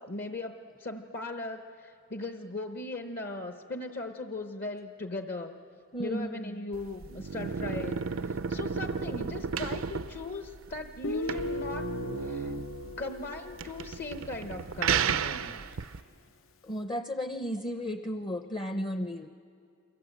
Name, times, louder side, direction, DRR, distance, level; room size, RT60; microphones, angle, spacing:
voice 1, 0.0-5.6 6.0-11.9 12.2-12.5 13.0-15.6, left 2 dB, 50° left, 7 dB, 0.9 m, -38 dB
voice 2, 5.9-6.7 16.6-19.3, equal, 25° left, 9 dB, 0.6 m, -34 dB
sound 1, 6.7-16.0, right 6 dB, 85° right, 0.6 m, -33 dB
Guitar, 11.0-14.6, left 2 dB, 75° left, 0.7 m, -37 dB
29.5 x 23.5 x 8.1 m, 2.6 s
head